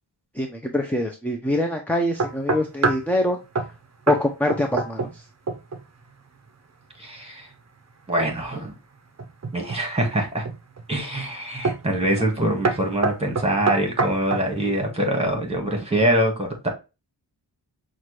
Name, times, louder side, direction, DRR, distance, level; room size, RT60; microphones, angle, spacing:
voice 1, 0.3-3.4 4.1-5.2, left 1 dB, 5° left, 0.6 m, -24 dB
sound 1, 2.2-3.1 3.5-3.8 4.1-4.2 4.5-5.2 5.5-5.8 9.2-9.8 10.4-10.9 11.6-11.9 12.2-12.4 12.6-14.5, right 3 dB, 40° right, 0.7 m, -25 dB
voice 2, 7.0-7.5 8.1-8.7 9.5-10.4 10.9-16.7, right 1 dB, 15° right, 1.6 m, -24 dB
5.9 x 2.5 x 3.1 m
wide cardioid pair, 105°, 44 cm